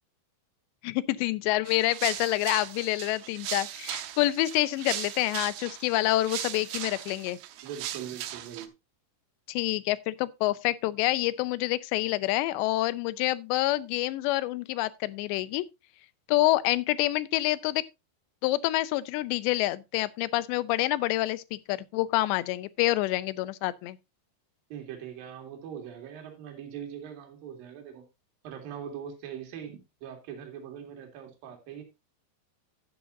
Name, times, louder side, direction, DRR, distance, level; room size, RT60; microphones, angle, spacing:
voice 1, 0.8-7.4 9.5-15.6 16.3-17.8 18.4-24.0, left 17 dB, 85° left, 2.9 m, -27 dB
sound 1, 1.7-8.7, right 13 dB, 85° right, 3.1 m, -38 dB
voice 2, 7.6-8.7 24.7-28.1 28.4-31.8, right 9 dB, 60° right, 3.8 m, -41 dB
12.5 x 9.2 x 2.6 m
omnidirectional pair, 5.0 m